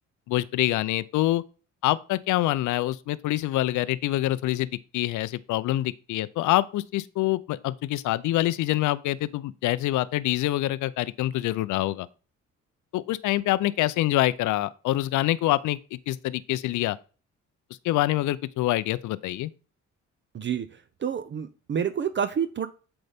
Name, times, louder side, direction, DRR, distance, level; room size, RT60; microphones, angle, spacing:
voice 1, 0.3-1.4 1.8-4.7 4.9-12.1 12.9-17.0 17.8-19.5, left 15 dB, 75° left, 0.5 m, -26 dB
voice 2, 20.3-22.7, right 8 dB, 40° right, 0.5 m, -29 dB
7.9 x 3.9 x 3.4 m
cardioid pair, 90°, 30 cm